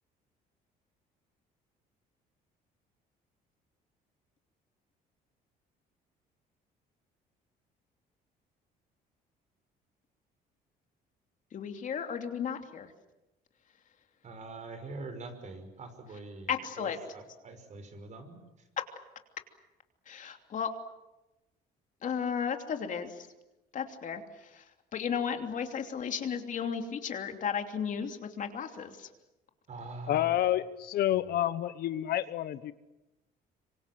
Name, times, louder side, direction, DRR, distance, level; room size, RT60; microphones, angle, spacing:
voice 1, 11.5-12.9 16.5-17.0 18.8-18.9 20.1-20.7 22.0-23.3 23.7-29.1, left 7 dB, 50° left, 3.0 m, -34 dB
voice 2, 14.2-16.5 16.8-18.4 29.7-30.4 31.2-31.4, right 2 dB, 45° right, 5.6 m, -44 dB
voice 3, 30.1-32.7, left 12 dB, 70° left, 1.1 m, -29 dB
26.0 x 25.0 x 7.7 m
cardioid pair, 110°, 17 cm